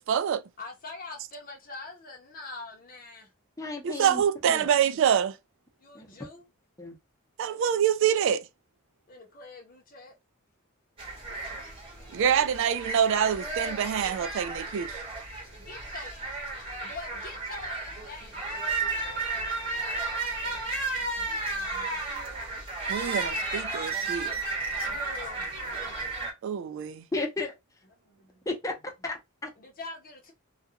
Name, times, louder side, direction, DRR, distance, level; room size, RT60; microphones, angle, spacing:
voice 1, 0.0-0.4 3.8-5.4 7.4-8.5 12.1-15.0 22.9-24.3 26.4-27.1, right 8 dB, 65° right, 0.3 m, -26 dB
voice 2, 0.6-3.3 5.8-6.5 9.1-10.1 15.6-16.1 16.6-18.5 19.9-22.1 24.9-25.6 28.0-28.5 29.6-30.3, left 3 dB, 45° left, 0.8 m, -45 dB
voice 3, 3.6-4.2 4.5-4.7 5.9-6.1 6.8-7.0 27.1-27.5 28.5-29.5, left 2 dB, 15° left, 0.6 m, -33 dB
sound 1, 11.0-26.3, right 3 dB, 25° right, 1.0 m, -33 dB
2.4 x 2.3 x 2.6 m
head